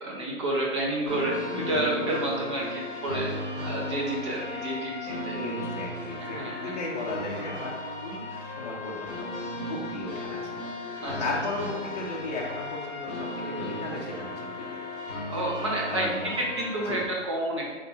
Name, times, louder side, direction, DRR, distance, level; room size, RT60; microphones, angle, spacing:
voice 1, 0.0-3.3 3.6-5.4 6.2-6.7 11.0-11.4 15.3-16.1 16.4-17.7, right 1 dB, 25° right, -3 dB, 0.7 m, -30 dB
sound 1, 1.1-17.1, left 1 dB, 15° left, 1.3 m, -36 dB
voice 2, 1.4-1.8 5.3-7.8 8.0-14.6 15.9-16.4 16.9-17.0, left 2 dB, 35° left, -3 dB, 0.6 m, -36 dB
3.6 x 3.2 x 4.0 m, 1.4 s
hypercardioid pair, 160°, 37 cm